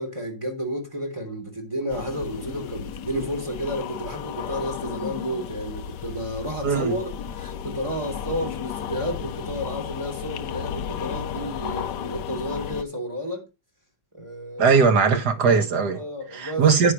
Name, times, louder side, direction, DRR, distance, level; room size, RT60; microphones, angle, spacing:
voice 1, 0.0-13.5 14.1-14.8 15.9-16.7, equal, 15° right, 3.4 m, -31 dB
sound 1, 1.9-12.8, left 9 dB, 70° left, 1.2 m, -34 dB
voice 2, 6.6-6.9 14.6-16.0 16.3-16.9, right 5 dB, 55° right, 2.0 m, -19 dB
9.9 x 9.7 x 3.1 m
omnidirectional pair, 2.2 m